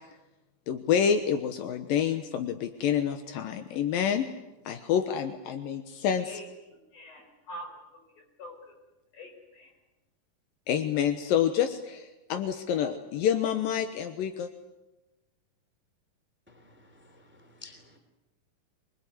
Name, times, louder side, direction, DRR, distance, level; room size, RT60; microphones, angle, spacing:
voice 1, 0.7-4.3 4.7-6.4 10.7-14.5, left 8 dB, 80° left, 8 dB, 2.8 m, -28 dB
voice 2, 6.2-8.7 9.1-9.7, equal, 55° left, 2 dB, 6.4 m, -46 dB
voice 3, 17.1-18.0, left 4 dB, 5° right, 6 dB, 2.5 m, -52 dB
25.0 x 20.5 x 9.6 m, 1.0 s
omnidirectional pair, 4.1 m